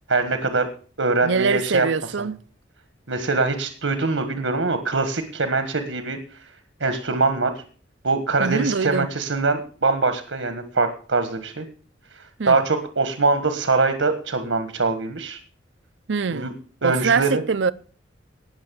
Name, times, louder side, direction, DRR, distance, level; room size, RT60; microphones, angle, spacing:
voice 1, 0.1-0.7 1.0-1.9 3.1-6.4 6.8-7.6 8.0-11.7 12.4-15.4 16.3-16.5 16.8-17.4, right 3 dB, 85° right, 1.5 m, -23 dB
voice 2, 1.2-2.4 8.4-9.1 12.4-12.6 16.1-16.5 16.8-17.7, right 5 dB, 70° right, 0.6 m, -23 dB
19.0 x 6.6 x 6.9 m
head